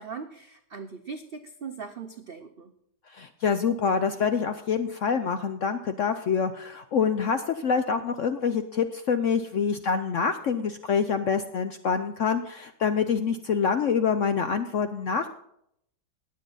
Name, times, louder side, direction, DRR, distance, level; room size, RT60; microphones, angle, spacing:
voice 1, 0.0-2.7, right 5 dB, 70° right, 7 dB, 0.5 m, -40 dB
voice 2, 3.1-15.3, left 6 dB, 65° left, 9 dB, 0.7 m, -26 dB
19.0 x 7.6 x 4.0 m, 0.72 s
omnidirectional pair, 1.9 m